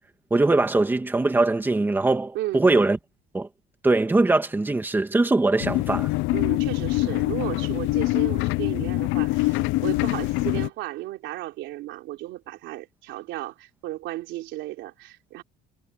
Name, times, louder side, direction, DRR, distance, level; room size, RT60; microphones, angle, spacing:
voice 1, 0.3-3.0 3.3-3.5 3.8-6.1, right 2 dB, 10° right, 2.0 m, -21 dB
voice 2, 2.3-2.7 6.3-15.4, right 16 dB, 75° right, 3.6 m, -34 dB
sound 1, 5.6-10.7, left 20 dB, 85° left, 0.6 m, -24 dB
cardioid pair, 155°, 19 cm